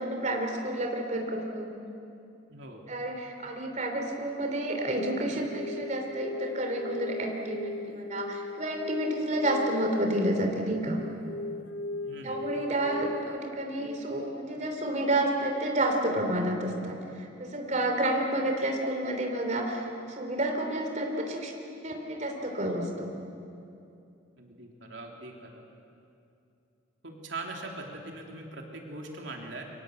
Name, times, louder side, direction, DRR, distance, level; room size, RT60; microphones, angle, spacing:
voice 1, 0.0-1.7 2.9-11.0 12.2-21.5 21.8-23.1, right 1 dB, 40° right, 2 dB, 3.3 m, -30 dB
voice 2, 2.5-2.8 12.1-12.5 24.4-25.6 27.0-29.6, right 2 dB, 70° right, 1 dB, 3.4 m, -41 dB
sound 1, 4.9-13.4, left 2 dB, 65° left, 0.7 m, -38 dB
29.5 x 24.0 x 8.1 m, 2.6 s
head